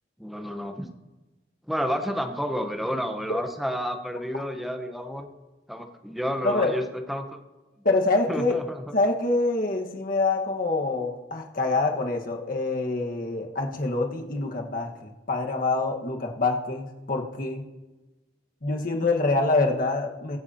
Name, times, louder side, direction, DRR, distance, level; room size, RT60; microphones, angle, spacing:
voice 1, 0.2-0.9 1.7-5.3 5.7-6.8 7.1-7.4 8.3-8.8, equal, ahead, 5 dB, 1.0 m, -30 dB
voice 2, 7.8-8.6 8.9-17.6 18.6-20.4, left 3 dB, 50° left, 1 dB, 1.5 m, -25 dB
23.0 x 8.0 x 2.9 m, 1.1 s
head